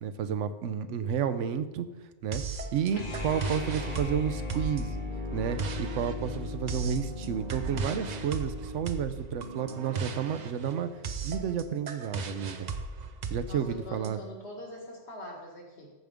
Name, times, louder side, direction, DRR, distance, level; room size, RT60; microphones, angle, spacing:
voice 1, 0.0-1.9 2.2-2.4 2.7-5.0 5.3-10.9 11.2-12.7 13.3-14.2, right 8 dB, 85° right, 11 dB, 1.0 m, -31 dB
sound 1, 2.3-14.1, right 4 dB, 50° right, 0.6 m, -37 dB
sound 2, 2.9-9.0, left 3 dB, 45° left, 1.2 m, -37 dB
voice 2, 13.5-15.9, equal, 60° left, -1 dB, 2.1 m, -43 dB
14.5 x 5.1 x 3.5 m, 1.2 s
omnidirectional pair, 1.2 m